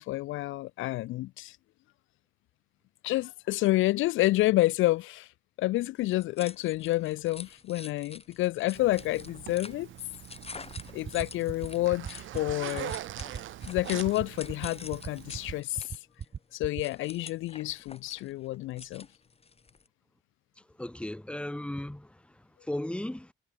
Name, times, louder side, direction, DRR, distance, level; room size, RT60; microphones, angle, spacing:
voice 1, 0.0-1.6 3.0-5.3 5.6-9.9 10.9-12.9 13.6-16.0 16.5-19.1, left 17 dB, 80° left, 0.4 m, -29 dB
sound 1, 6.0-19.9, left 4 dB, 30° left, 4.9 m, -47 dB
Zipper (clothing), 8.7-15.6, right 13 dB, 80° right, 1.4 m, -43 dB
sound 2, 10.8-16.8, right 7 dB, 50° right, 4.1 m, -37 dB
voice 2, 20.8-23.3, left 1 dB, 5° left, 1.6 m, -36 dB
cardioid pair, 90°, 20 cm